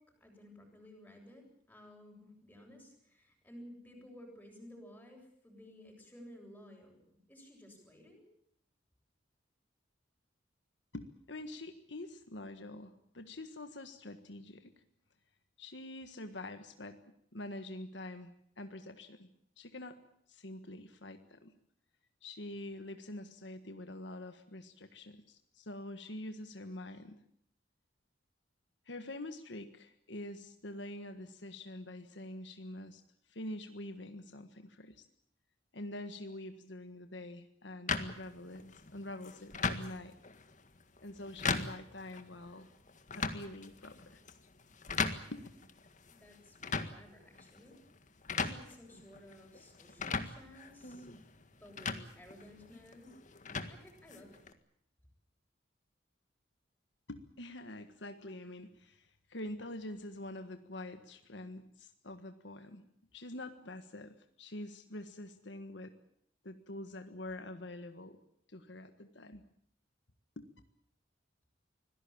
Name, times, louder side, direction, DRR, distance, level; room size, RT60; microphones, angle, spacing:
voice 1, 0.0-8.3 46.1-47.8 48.4-51.1 51.6-53.2 53.7-54.4, left 1 dB, 10° left, 1 dB, 7.9 m, -55 dB
voice 2, 10.9-14.7 15.6-17.0 17.3-19.3 19.6-20.0 20.3-21.5 22.2-27.2 28.9-33.0 33.3-35.0 35.7-38.6 38.9-40.1 41.0-42.7 43.1-44.2 45.3-45.5 57.1-62.8 63.1-65.9 66.4-68.2 68.5-69.4 70.4-70.5, left 1 dB, 70° left, 8 dB, 1.6 m, -46 dB
sound 1, 37.9-54.5, left 4 dB, 45° left, 1.8 m, -40 dB
25.0 x 17.5 x 8.8 m, 0.68 s
head